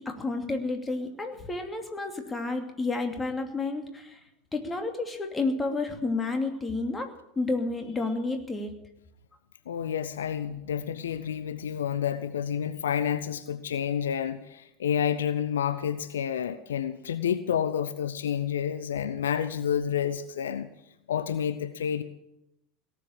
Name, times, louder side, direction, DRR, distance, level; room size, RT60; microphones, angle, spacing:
voice 1, 0.0-4.2 4.5-7.1 7.4-8.7, left 3 dB, 15° left, 5 dB, 2.7 m, -30 dB
voice 2, 9.7-20.7 21.1-22.0, left 8 dB, 75° left, 12 dB, 0.7 m, -29 dB
18.0 x 7.6 x 9.9 m, 0.82 s
figure-of-eight pair, 75°, 0 cm